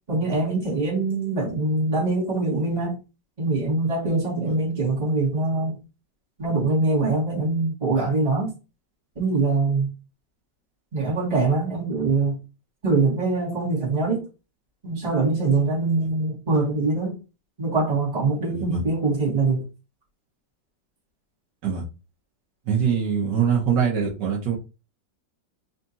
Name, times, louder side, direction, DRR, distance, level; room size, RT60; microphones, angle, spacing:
voice 1, 0.1-3.0 3.4-5.8 6.4-8.5 9.2-9.9 10.9-12.4 12.8-14.2 14.8-17.2 17.6-19.6, right 3 dB, 20° right, 2.1 m, -23 dB
voice 2, 22.7-24.6, right 7 dB, 75° right, 1.6 m, -23 dB
4.2 x 3.5 x 2.7 m
omnidirectional pair, 2.0 m